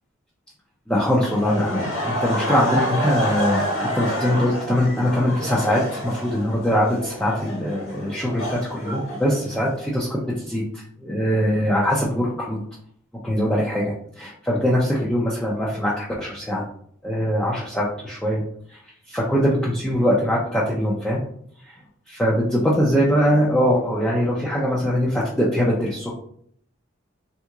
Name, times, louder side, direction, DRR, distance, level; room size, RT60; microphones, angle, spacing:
voice 1, 0.9-3.6 3.9-10.2 10.5-12.6 13.2-16.6 17.0-18.4 18.7-18.8 19.1-21.2 22.1-26.1, equal, 5° left, -6 dB, 0.4 m, -22 dB
Laughter, 1.2-9.8, equal, 75° left, 1.4 m, -28 dB
3.5 x 2.9 x 2.3 m, 0.64 s
head